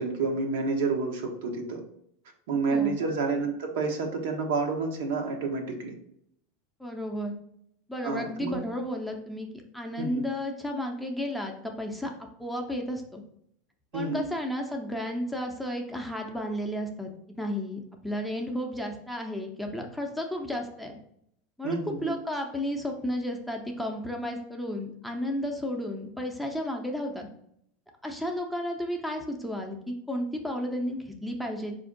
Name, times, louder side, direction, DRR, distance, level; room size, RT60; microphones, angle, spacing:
voice 1, 0.0-1.8 2.5-5.9 8.0-8.6 10.0-10.2 13.9-14.2 21.6-22.1, right 4 dB, 80° right, 3 dB, 0.8 m, -29 dB
voice 2, 2.7-3.0 6.8-7.3 7.9-9.5 9.7-12.1 12.4-13.2 13.9-17.1 17.4-21.0 21.6-27.3 28.0-31.8, equal, ahead, 2 dB, 0.6 m, -33 dB
4.1 x 2.6 x 3.8 m, 0.70 s
supercardioid pair, 125°, 0 cm